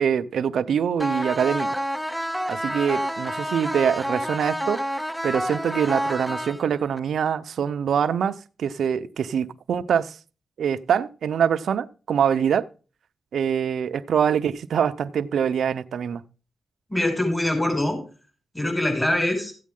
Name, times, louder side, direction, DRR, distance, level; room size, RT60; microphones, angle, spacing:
voice 1, 0.0-1.7 2.5-4.8 5.2-10.2 10.6-12.7 13.3-16.2, right 8 dB, 80° right, 0.5 m, -24 dB
sound 1, 1.0-7.0, equal, ahead, 0.5 m, -29 dB
voice 2, 16.9-18.0 18.5-19.5, left 1 dB, 15° left, 5.6 m, -23 dB
13.5 x 8.4 x 3.7 m
cardioid pair, 70°, 0 cm